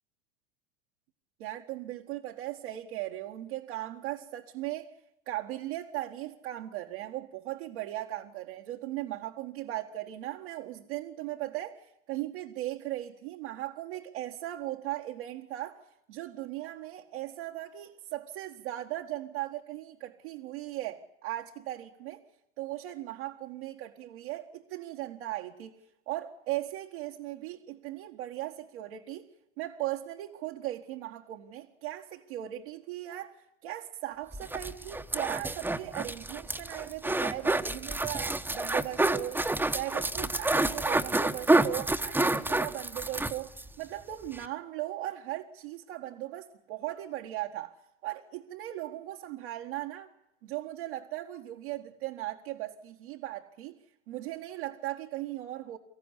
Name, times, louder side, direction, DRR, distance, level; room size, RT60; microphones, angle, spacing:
voice 1, 1.4-4.9 5.3-22.2 22.6-25.8 26.1-29.3 29.6-47.7 48.0-50.1 50.4-53.8 54.1-55.8, right 15 dB, 70° right, 1.8 m, -38 dB
sound 1, 34.3-43.7 44.0-44.1 44.3-44.5, right 2 dB, 5° right, 1.0 m, -29 dB
24.5 x 14.5 x 9.9 m
hypercardioid pair, 110°, 35 cm